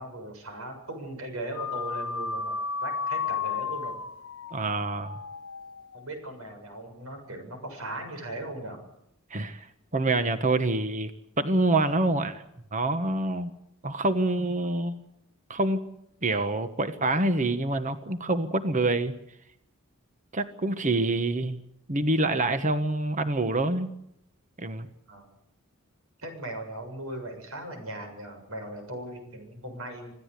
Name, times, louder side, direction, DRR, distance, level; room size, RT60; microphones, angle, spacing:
voice 1, 0.0-2.6 2.8-4.0 5.9-8.8 25.1-25.3 26.2-30.1, right 1 dB, 80° right, 5 dB, 7.2 m, -38 dB
sound 1, 1.5-6.1, left 5 dB, 85° left, 1.2 m, -33 dB
voice 2, 4.5-5.2 9.3-9.7 9.9-11.1 11.4-12.4 12.7-13.5 13.8-15.0 15.5-15.8 16.2-19.1 20.3-21.6 21.9-23.9 24.6-24.9, right 2 dB, 35° right, 9 dB, 1.3 m, -26 dB
26.0 x 16.0 x 8.3 m, 0.78 s
head